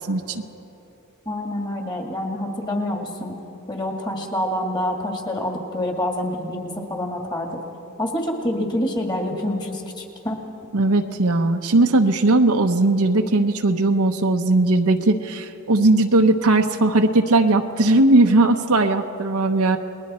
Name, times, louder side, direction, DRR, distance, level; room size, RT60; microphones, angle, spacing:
voice 1, 0.1-0.4 10.7-19.8, right 2 dB, 75° right, 4 dB, 0.9 m, -18 dB
voice 2, 1.3-3.4 3.7-7.6 8.0-10.4, left 1 dB, 20° left, 1 dB, 2.2 m, -27 dB
30.0 x 20.5 x 4.4 m, 2.9 s
head